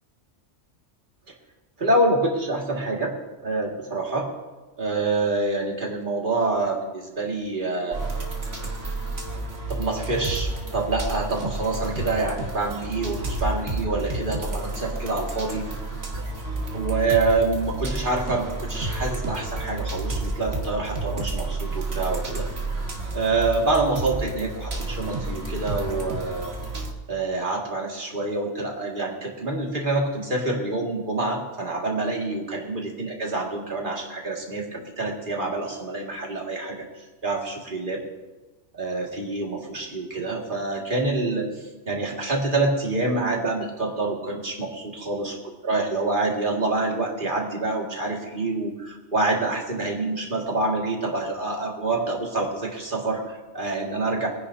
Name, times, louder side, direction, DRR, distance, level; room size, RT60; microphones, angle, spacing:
voice 1, 1.8-3.1 3.4-4.3 4.8-8.0 9.7-15.7 16.7-22.5 23.1-26.5 27.1-36.8 37.2-38.0 38.7-54.3, right 2 dB, 40° right, -1 dB, 2.3 m, -26 dB
sound 1, 7.9-26.9, right 2 dB, 60° right, 1.9 m, -30 dB
22.5 x 10.0 x 2.8 m, 1.2 s
omnidirectional pair, 1.3 m